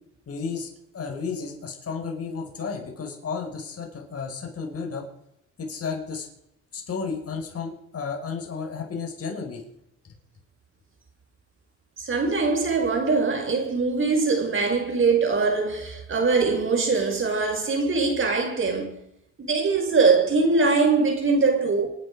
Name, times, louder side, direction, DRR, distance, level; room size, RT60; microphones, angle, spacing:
voice 1, 0.3-0.7 0.9-5.1 5.6-6.3 6.7-9.6 10.0-10.1, left 5 dB, 50° left, 5.3 m, -32 dB
voice 2, 12.0-19.0 19.4-21.9, right 4 dB, 40° right, 5.7 m, -22 dB
28.5 x 9.6 x 5.0 m
cardioid pair, 90°, 30 cm